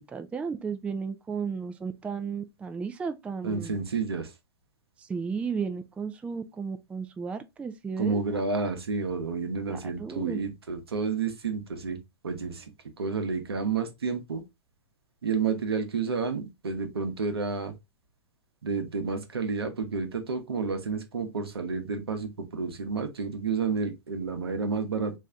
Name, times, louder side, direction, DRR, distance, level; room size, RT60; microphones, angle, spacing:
voice 1, 0.1-3.8 5.0-8.2 9.7-10.4, right 5 dB, 10° right, 0.3 m, -34 dB
voice 2, 3.4-4.3 8.0-12.0 12.2-12.7 13.0-14.4 15.2-17.7 18.6-25.1, right 5 dB, 80° right, 0.9 m, -30 dB
3.2 x 2.7 x 3.5 m
hypercardioid pair, 105°, 13 cm